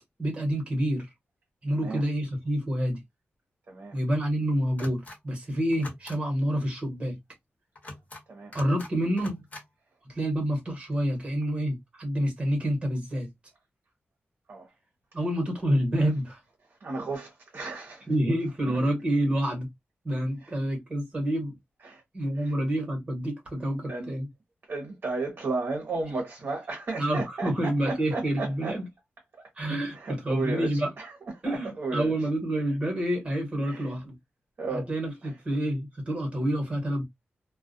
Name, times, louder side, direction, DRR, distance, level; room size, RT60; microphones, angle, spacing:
voice 1, 0.2-1.1 1.6-3.0 3.9-7.2 8.5-9.4 10.0-13.3 15.1-16.4 18.1-19.7 20.0-21.6 22.1-24.3 27.0-28.9 29.6-30.9 31.4-34.1 34.7-37.0, right 1 dB, 25° right, 1.1 m, -28 dB
voice 2, 3.7-4.0 8.3-8.5 14.5-14.7 16.8-18.1 18.7-18.8 21.8-22.0 22.4-22.5 23.9-24.1 24.7-28.7 29.9-31.1 31.5-32.1 33.6-33.9 34.6-34.9 35.2-35.3, right 3 dB, 50° right, 0.8 m, -34 dB
sound 1, 4.8-5.2 5.7-6.2 7.7-8.2 8.5-8.9 9.2-9.6, left 2 dB, 40° left, 1.1 m, -42 dB
2.3 x 2.1 x 2.5 m
wide cardioid pair, 150°, 4 cm